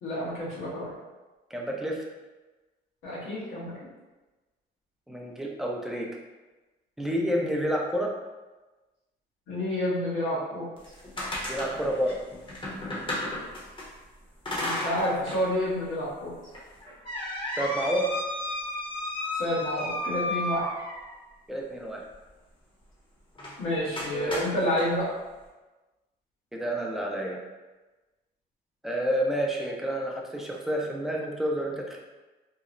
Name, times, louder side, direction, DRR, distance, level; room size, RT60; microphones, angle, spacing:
voice 1, 0.0-0.9 3.0-3.7 9.5-10.7 14.6-16.3 19.4-20.7 23.6-25.1, left 1 dB, 85° left, -8 dB, 1.2 m, -29 dB
voice 2, 1.5-2.0 5.1-6.1 7.0-8.1 11.5-12.2 17.6-18.1 21.5-22.0 24.1-24.4 26.5-27.4 28.8-32.0, equal, ahead, -1 dB, 0.4 m, -29 dB
sound 1, 10.8-13.9 14.5-15.5 15.8-15.9 16.5-21.2 23.4-23.6 24.0-24.9, left 1 dB, 25° left, 0.8 m, -33 dB
2.9 x 2.0 x 2.5 m, 1.2 s
cardioid pair, 90°, 20 cm